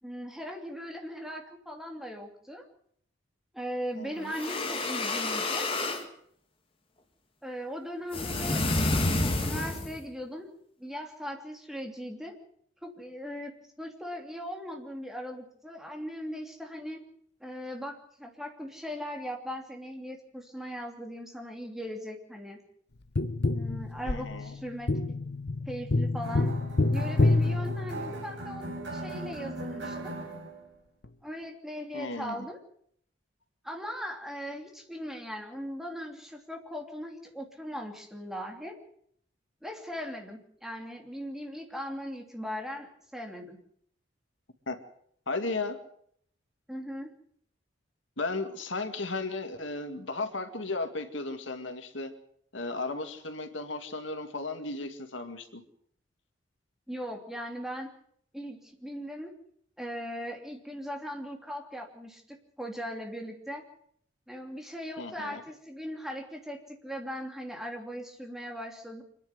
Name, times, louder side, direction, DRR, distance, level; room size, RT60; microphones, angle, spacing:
voice 1, 0.0-2.6 3.5-5.7 7.4-8.7 9.2-10.5 10.8-12.3 12.8-13.5 13.8-17.0 17.4-22.6 23.5-25.2 25.7-26.5 26.9-30.2 31.2-32.6 33.6-38.8 39.6-43.6 46.7-47.1 56.9-57.9 58.3-59.3 59.8-63.7 64.3-69.0, equal, ahead, 2 dB, 3.0 m, -39 dB
voice 2, 4.0-4.3 24.0-24.5 31.9-32.5 44.7-44.8 45.3-45.8 48.2-52.1 52.5-55.6 65.0-65.4, left 3 dB, 75° left, 7 dB, 2.2 m, -35 dB
sound 1, 4.2-6.1 8.1-10.0, left 2 dB, 30° left, 2.4 m, -29 dB
Tap, 23.2-28.4 31.0-31.1, left 2 dB, 60° left, 1.0 m, -28 dB
sound 2, 26.2-30.7, right 2 dB, 65° right, 5.4 m, -39 dB
25.5 x 10.5 x 9.7 m, 0.67 s
head